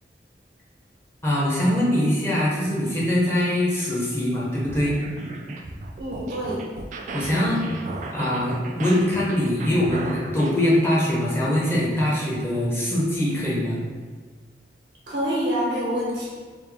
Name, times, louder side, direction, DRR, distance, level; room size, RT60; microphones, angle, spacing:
voice 1, 1.2-5.0 7.1-7.6 8.1-13.8, left 1 dB, 15° left, -7 dB, 0.8 m, -23 dB
sound 1, 4.6-10.6, right 2 dB, 45° right, 0.3 m, -35 dB
voice 2, 6.0-6.6 15.1-16.3, equal, 85° right, -5 dB, 1.2 m, -26 dB
3.4 x 2.8 x 3.4 m, 1.5 s
head